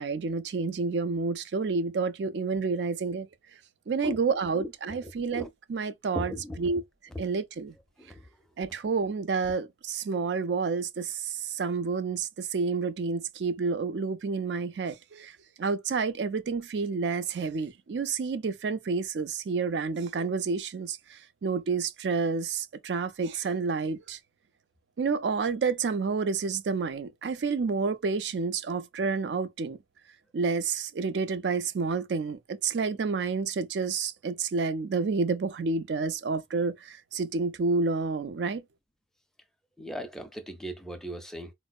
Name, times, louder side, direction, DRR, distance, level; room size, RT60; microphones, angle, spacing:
voice 1, 0.0-3.3 3.9-6.8 7.2-7.7 8.6-24.2 25.0-29.8 30.3-38.6, right 4 dB, 75° right, 0.4 m, -29 dB
voice 2, 5.0-5.5 6.2-6.8 7.1-7.2 8.0-8.2 39.8-41.5, equal, 5° left, 0.4 m, -38 dB
4.3 x 2.0 x 2.3 m
head